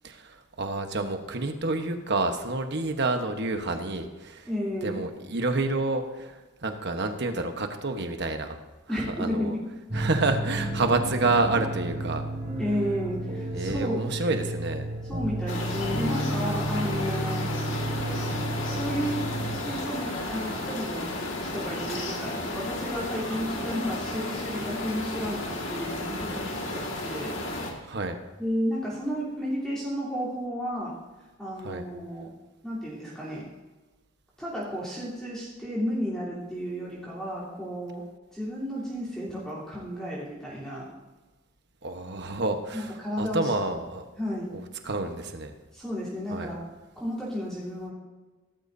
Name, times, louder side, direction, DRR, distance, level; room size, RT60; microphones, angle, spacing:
voice 1, 0.0-4.5 4.8-8.6 8.9-9.5 9.9-12.2 13.5-14.9 27.8-28.2 31.6-31.8 41.8-44.1 44.5-45.5 46.3-46.5, right 2 dB, 55° right, 6 dB, 1.2 m, -29 dB
voice 2, 4.5-5.0 8.9-9.6 12.6-14.0 15.1-17.8 18.6-19.2 19.6-27.4 28.4-30.9 31.4-32.3 32.6-33.4 34.4-38.0 38.3-40.9 42.7-43.5 44.2-44.5 45.7-46.7 47.0-47.9, equal, 5° left, -9 dB, 3.5 m, -32 dB
sound 1, 9.9-19.6, right 1 dB, 35° right, 3.1 m, -32 dB
sound 2, 15.5-27.7, left 2 dB, 65° left, 2.0 m, -33 dB
17.0 x 13.5 x 2.7 m, 1.2 s
head